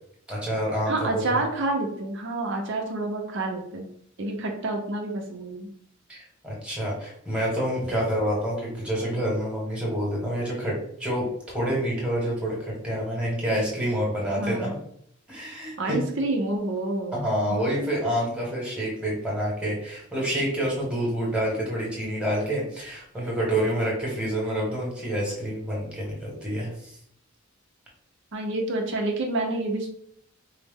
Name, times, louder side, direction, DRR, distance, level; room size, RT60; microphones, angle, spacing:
voice 1, 0.3-1.4 6.1-6.2 6.4-11.3 11.5-14.8 15.3-16.0 17.1-26.9, equal, 5° right, -4 dB, 1.3 m, -28 dB
voice 2, 0.9-3.9 4.2-5.7 14.4-14.8 15.8-17.2 28.3-29.9, right 2 dB, 65° right, 1 dB, 0.7 m, -28 dB
4.5 x 2.0 x 3.5 m, 0.69 s
head